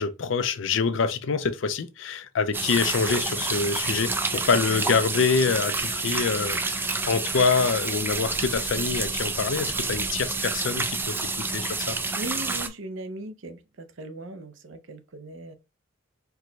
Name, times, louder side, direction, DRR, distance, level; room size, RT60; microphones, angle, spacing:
voice 1, 0.0-12.0, left 5 dB, 65° left, 0.5 m, -26 dB
sound 1, 2.5-12.7, right 3 dB, 10° right, 0.3 m, -29 dB
voice 2, 12.1-15.6, right 1 dB, 65° right, 0.6 m, -38 dB
4.5 x 2.2 x 3.9 m
head